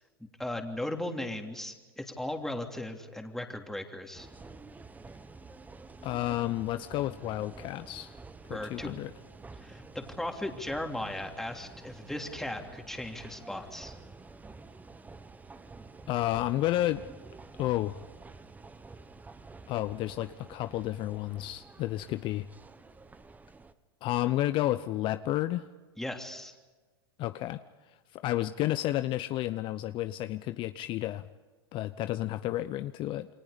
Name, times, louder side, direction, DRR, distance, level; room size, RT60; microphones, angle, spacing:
voice 1, 0.2-4.3 8.5-9.1 9.6-13.9 26.0-26.5, left 1 dB, 5° left, 3 dB, 3.0 m, -37 dB
sound 1, 4.1-23.7, right 3 dB, 10° right, 1.2 m, -49 dB
voice 2, 6.0-8.2 8.5-9.1 16.1-17.0 17.6-18.0 19.7-22.5 24.0-25.7 27.2-27.6 28.1-31.3 31.7-33.3, left 15 dB, 40° left, 12 dB, 0.7 m, -31 dB
29.0 x 23.5 x 5.2 m, 1.3 s
hypercardioid pair, 100°, 13 cm